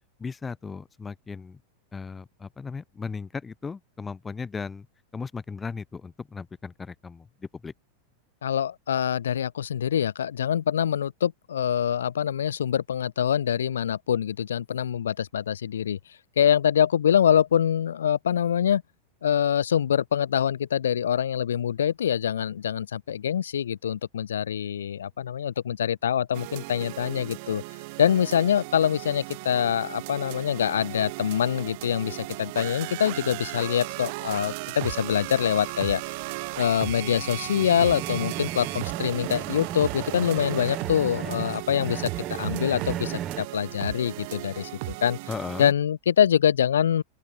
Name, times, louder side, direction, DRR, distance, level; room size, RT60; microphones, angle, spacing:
voice 1, 0.2-1.6 1.9-4.9 5.1-7.7 45.3-45.7, left 5 dB, 15° left, 3.9 m, -36 dB
voice 2, 8.4-16.0 16.4-18.8 19.2-27.6 28.0-36.0 36.6-42.1 42.4-45.2 45.6-47.0, left 9 dB, 80° left, 2.6 m, -25 dB
sound 1, 26.3-45.7, right 27 dB, 55° right, 1.2 m, -36 dB
sound 2, 35.1-43.4, right 10 dB, 30° right, 1.3 m, -36 dB
open air
hypercardioid pair, 100°, 0 cm